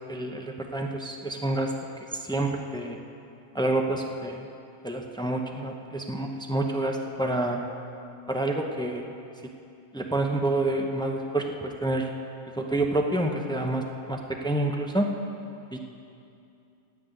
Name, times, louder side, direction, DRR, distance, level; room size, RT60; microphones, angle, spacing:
voice 1, 0.0-1.7 2.2-3.0 3.5-4.4 4.8-7.7 8.3-9.1 9.9-12.1 12.6-13.8 14.1-15.1 15.7-15.8, right 2 dB, 5° left, 2 dB, 0.4 m, -28 dB
10.0 x 9.3 x 8.2 m, 2.6 s
omnidirectional pair, 1.5 m